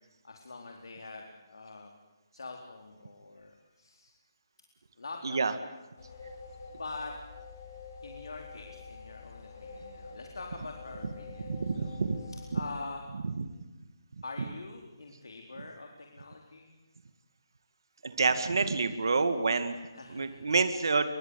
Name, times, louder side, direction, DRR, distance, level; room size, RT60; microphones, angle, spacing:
voice 1, 0.2-1.9 2.3-4.1 5.0-5.4 6.7-7.1 8.0-11.9 12.3-13.0 14.2-16.7 19.9-20.4, left 3 dB, 85° left, 2 dB, 4.1 m, -44 dB
sound 1, 6.0-12.8, left 4 dB, 45° left, 6.8 m, -47 dB
voice 2, 11.4-12.2 12.5-12.6 13.2-13.4 18.0-19.7 20.1-21.1, right 4 dB, 65° right, 10 dB, 2.1 m, -28 dB
30.0 x 23.5 x 8.4 m, 1.1 s
hypercardioid pair, 175°, 2 cm